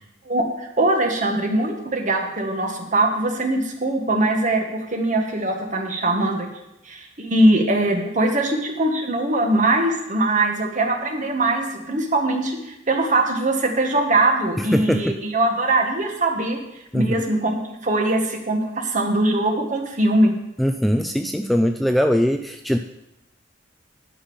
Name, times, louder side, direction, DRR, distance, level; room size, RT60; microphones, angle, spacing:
voice 1, 0.2-6.5 6.8-16.6 16.9-17.6 17.8-20.3, right 2 dB, 40° right, 3 dB, 1.6 m, -21 dB
voice 2, 14.6-15.1 16.9-17.2 20.6-22.8, equal, ahead, 6 dB, 0.4 m, -21 dB
11.0 x 5.4 x 7.1 m, 0.88 s
head